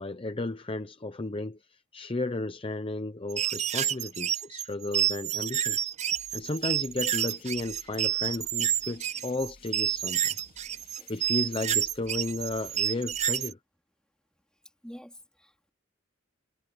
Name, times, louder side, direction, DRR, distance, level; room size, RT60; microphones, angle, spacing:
voice 1, 0.0-5.9 6.3-10.3 11.1-13.6, left 2 dB, 25° left, 0.7 m, -34 dB
sound 1, 3.3-13.5, right 11 dB, 35° right, 0.5 m, -29 dB
sound 2, 6.1-13.5, left 3 dB, 45° left, 3.2 m, -56 dB
voice 2, 14.8-15.7, equal, 5° left, 4.0 m, -48 dB
head